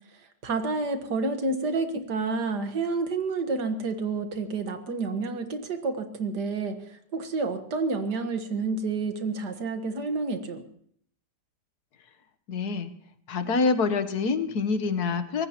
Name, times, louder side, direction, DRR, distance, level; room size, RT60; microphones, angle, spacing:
voice 1, 0.4-10.6, right 3 dB, 75° right, 7 dB, 2.0 m, -29 dB
voice 2, 12.5-12.9 13.3-15.5, left 4 dB, 65° left, 10 dB, 1.6 m, -26 dB
24.0 x 19.0 x 3.0 m, 0.63 s
omnidirectional pair, 1.8 m